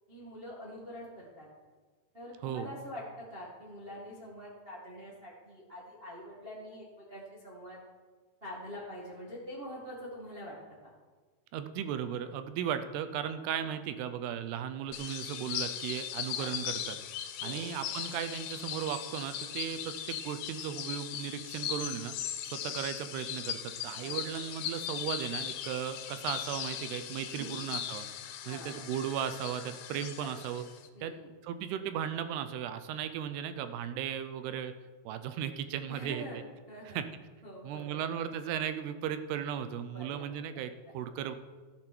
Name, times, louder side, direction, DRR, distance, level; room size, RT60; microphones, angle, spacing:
voice 1, 0.1-1.5 2.1-7.8 8.4-10.6 13.6-13.7 16.3-16.5 17.4-17.7 24.0-24.4 27.4-27.6 28.4-28.9 30.2-30.4 30.9-31.3 35.9-36.4 36.7-37.0 37.4-38.2 39.9-40.4, equal, 60° right, -5 dB, 0.6 m, -45 dB
voice 2, 11.5-17.0 17.4-22.1 22.4-28.0 28.5-30.6 31.0-31.1 31.4-34.7 35.1-36.4 36.9-37.1 37.6-41.4, right 9 dB, 80° right, 10 dB, 2.6 m, -36 dB
sound 1, 14.9-30.9, left 10 dB, 85° left, 2.6 m, -39 dB
15.0 x 7.8 x 4.5 m, 1.4 s
omnidirectional pair, 4.8 m